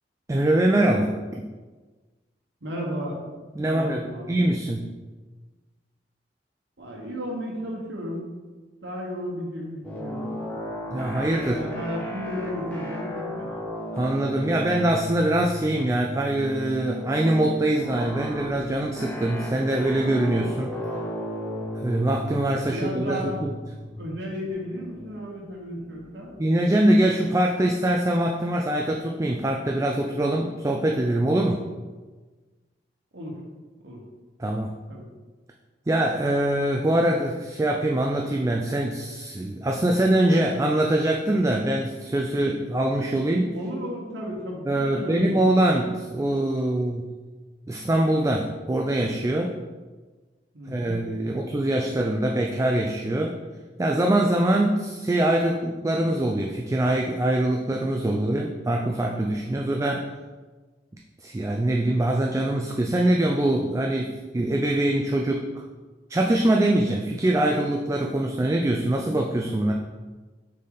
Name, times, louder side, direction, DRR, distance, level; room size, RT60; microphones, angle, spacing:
voice 1, 0.3-1.4 3.6-4.9 10.9-11.6 13.9-20.7 21.8-23.6 26.4-31.6 34.4-34.8 35.9-43.5 44.7-47.1 47.7-49.5 50.7-53.3 53.8-60.0 61.2-65.6 66.1-69.7, right 1 dB, 15° right, 0 dB, 0.3 m, -23 dB
voice 2, 2.6-3.2 3.6-4.4 6.8-8.3 8.8-10.4 11.4-13.5 22.7-23.4 24.0-26.3 33.1-33.4 33.8-34.0 34.9-35.1 43.5-45.4 50.5-51.4, equal, 75° right, -2 dB, 1.2 m, -34 dB
sound 1, 9.8-26.4, left 1 dB, 10° left, 1.0 m, -35 dB
6.3 x 4.3 x 3.9 m, 1.3 s
head